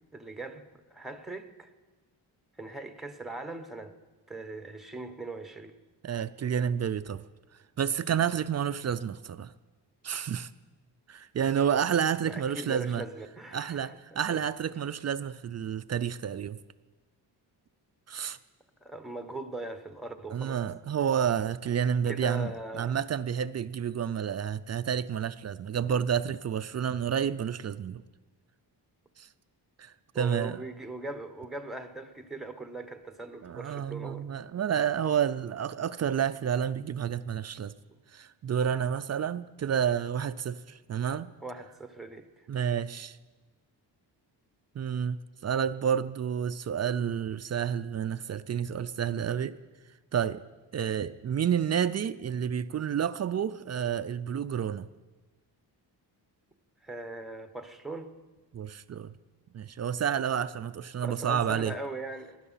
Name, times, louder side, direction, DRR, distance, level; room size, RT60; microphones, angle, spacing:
voice 1, 0.1-1.7 2.6-4.0 4.3-5.7 12.2-14.0 14.3-14.4 18.8-20.6 22.1-22.9 30.1-34.3 41.4-42.5 56.8-58.1 61.0-62.4, right 2 dB, ahead, 0.9 m, -40 dB
voice 2, 6.0-7.2 7.8-9.5 10.0-10.5 11.1-13.0 13.5-16.6 18.1-18.4 20.3-28.0 29.2-29.3 29.8-30.6 33.4-37.7 38.1-41.3 42.5-43.2 44.8-45.2 45.4-49.5 50.1-50.4 50.7-54.9 58.5-59.1 59.5-61.7, right 8 dB, 40° right, 0.4 m, -30 dB
19.5 x 11.0 x 5.6 m
wide cardioid pair, 145°, 43 cm